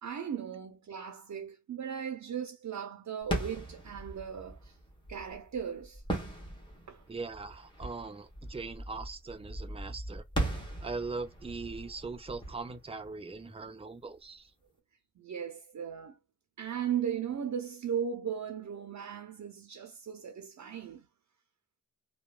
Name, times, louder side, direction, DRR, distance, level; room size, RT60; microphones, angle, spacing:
voice 1, 0.0-4.8 5.1-6.0 6.9-7.0 15.2-16.2 16.6-21.1, right 8 dB, 70° right, 0.6 m, -37 dB
sound 1, 3.2-13.8, right 1 dB, 15° left, 1.2 m, -39 dB
voice 2, 7.1-10.2 10.8-14.5, right 4 dB, 20° right, 0.5 m, -40 dB
2.9 x 2.2 x 2.2 m
wide cardioid pair, 80°, 31 cm